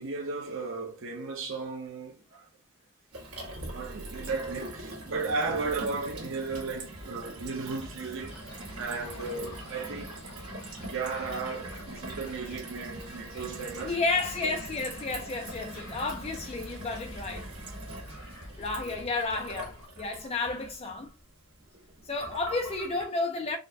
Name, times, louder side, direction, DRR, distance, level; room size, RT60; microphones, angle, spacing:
voice 1, 0.0-2.5 3.6-8.4 8.8-10.1 10.5-14.0, right 4 dB, 60° right, 0.8 m, -35 dB
Gurgling / Water tap faucet / Sink (filling or washing), 3.1-23.0, right 2 dB, 85° right, 1.4 m, -43 dB
sound 1, 5.7-19.2, equal, 25° right, 0.6 m, -49 dB
sound 2, 8.2-19.9, left 2 dB, 85° left, 1.1 m, -51 dB
voice 2, 13.8-17.5 18.6-21.1 22.0-23.6, left 3 dB, 25° left, 0.4 m, -32 dB
3.9 x 2.1 x 2.6 m
head